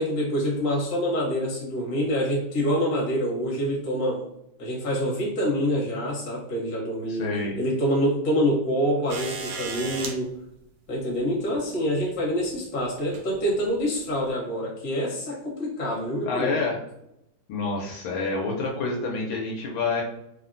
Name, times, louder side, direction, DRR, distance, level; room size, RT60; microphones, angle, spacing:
voice 1, 0.0-4.2 4.6-7.3 7.6-10.3 10.9-16.6, equal, 55° left, -4 dB, 1.3 m, -26 dB
voice 2, 7.1-7.6 16.2-16.8 17.5-20.0, left 3 dB, 80° left, -2 dB, 1.3 m, -28 dB
sound 1, 9.1-10.2 11.6-11.7 13.0-13.3 14.2-14.3, right 4 dB, 85° right, 1.4 m, -34 dB
3.3 x 2.1 x 2.5 m, 0.83 s
omnidirectional pair, 2.3 m